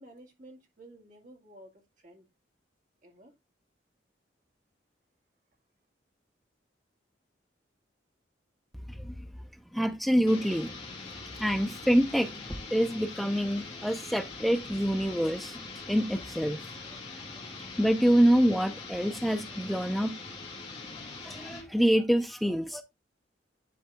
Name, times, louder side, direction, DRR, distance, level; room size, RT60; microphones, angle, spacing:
voice 1, 0.0-1.7 2.0-2.3 3.0-3.3, right 1 dB, 45° right, 2.1 m, -52 dB
voice 2, 9.7-10.8 11.4-16.6 16.9-17.0 17.8-20.1 21.2-22.8, equal, ahead, 0.5 m, -26 dB
sound 1, 10.2-21.7, left 3 dB, 30° left, 2.4 m, -43 dB
10.0 x 3.5 x 3.6 m
head